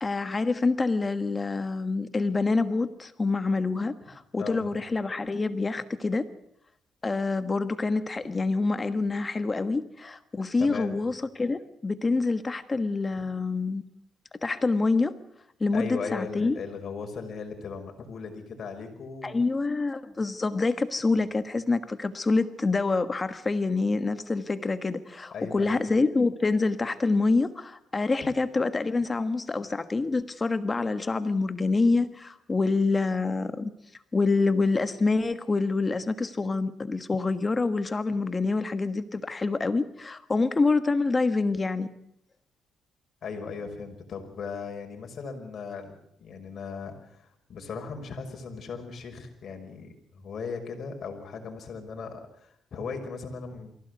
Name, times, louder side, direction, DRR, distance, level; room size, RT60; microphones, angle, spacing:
voice 1, 0.0-6.3 7.0-13.8 14.4-15.2 15.6-16.6 19.2-33.7 34.1-41.9, left 3 dB, 25° left, 11 dB, 1.3 m, -26 dB
voice 2, 4.4-4.7 10.6-10.9 13.1-13.2 15.7-19.4 25.3-25.8 43.2-45.9 46.2-53.7, left 5 dB, 55° left, 4 dB, 5.4 m, -38 dB
24.0 x 16.5 x 8.1 m, 0.76 s
cardioid pair, 90°, 0 cm